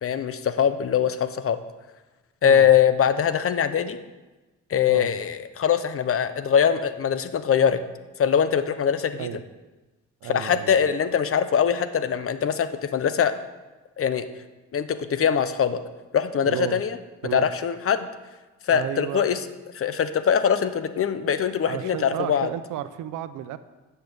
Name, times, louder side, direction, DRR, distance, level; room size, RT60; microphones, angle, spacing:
voice 1, 0.0-1.6 2.4-4.0 4.7-7.8 8.2-9.4 10.2-13.3 14.0-14.3 14.7-15.8 16.1-17.0 17.3-18.1 18.6-19.4 19.7-22.5, left 8 dB, 50° left, 11 dB, 1.0 m, -22 dB
voice 2, 10.2-10.8 16.5-16.8 17.2-17.5 18.7-19.2 21.6-23.6, right 12 dB, 85° right, 13 dB, 0.8 m, -32 dB
10.5 x 7.0 x 8.0 m, 1.2 s
cardioid pair, 90°, 30 cm